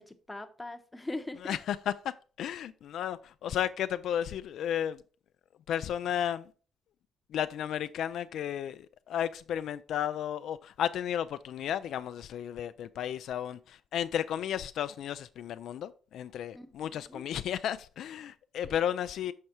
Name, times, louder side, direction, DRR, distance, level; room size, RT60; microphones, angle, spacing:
voice 1, 0.0-1.6 16.5-16.7 16.9-17.2 18.7-18.8, left 2 dB, 15° left, 0.8 m, -41 dB
voice 2, 1.4-2.1 2.4-5.0 5.7-6.5 7.3-19.3, left 10 dB, 75° left, 0.3 m, -33 dB
6.5 x 4.7 x 4.3 m
cardioid pair, 90°, 0 cm